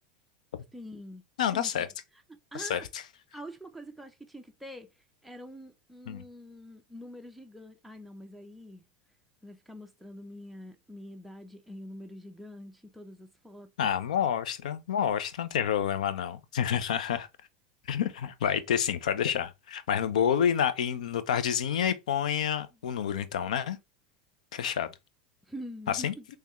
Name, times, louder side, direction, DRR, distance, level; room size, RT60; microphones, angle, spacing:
voice 1, 0.7-1.2 1.5-1.7 2.5-2.9 3.3-8.8 9.4-13.9 25.5-26.3, equal, ahead, 0.5 m, -45 dB
voice 2, 1.4-1.9 2.5-2.8 6.1-6.2 13.8-17.3 17.9-23.8 24.5-24.9 25.9-26.1, left 8 dB, 85° left, 0.5 m, -28 dB
3.5 x 3.2 x 3.0 m
hypercardioid pair, 105°, 4 cm